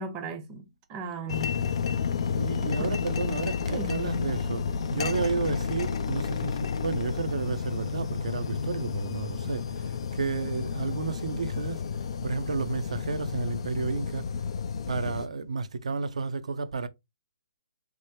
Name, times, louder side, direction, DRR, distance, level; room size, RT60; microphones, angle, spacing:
voice 1, 0.0-1.6 2.8-2.9 3.7-3.9, right 3 dB, 25° right, 0.6 m, -37 dB
sound 1, 1.3-15.3, left 6 dB, 55° left, 0.4 m, -31 dB
voice 2, 2.3-11.9 12.2-14.3 14.9-16.9, right 4 dB, 75° right, 0.5 m, -32 dB
3.3 x 2.1 x 3.1 m
hypercardioid pair, 140°, 4 cm